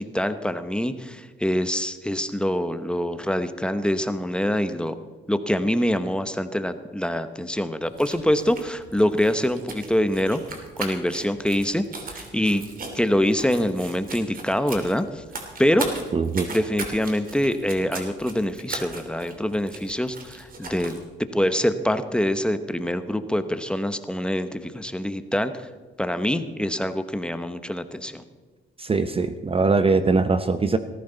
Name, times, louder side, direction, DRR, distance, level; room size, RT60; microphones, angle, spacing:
voice 1, 0.0-5.0 5.3-10.4 10.8-11.8 12.1-12.6 12.9-15.2 15.6-15.9 16.5-21.0 21.3-25.7 26.0-28.2, equal, 5° left, 10 dB, 1.0 m, -25 dB
sound 1, 7.8-21.0, right 3 dB, 45° right, 2.9 m, -38 dB
voice 2, 16.1-16.5 28.9-30.8, right 4 dB, 30° right, 11 dB, 0.7 m, -21 dB
18.0 x 14.5 x 4.0 m, 1.4 s
cardioid pair, 90°, 20 cm